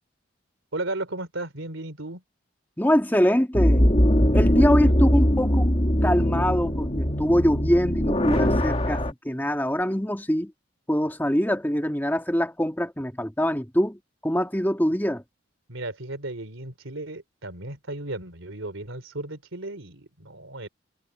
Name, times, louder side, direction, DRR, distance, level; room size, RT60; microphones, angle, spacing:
voice 1, 0.7-2.2 4.8-4.9 15.7-20.7, right 2 dB, 80° right, 3.4 m, -35 dB
voice 2, 2.8-3.8 4.3-5.7 6.0-10.5 10.9-15.2, equal, 10° left, 2.0 m, -24 dB
sound 1, 3.5-9.1, equal, 30° left, 2.4 m, -21 dB
head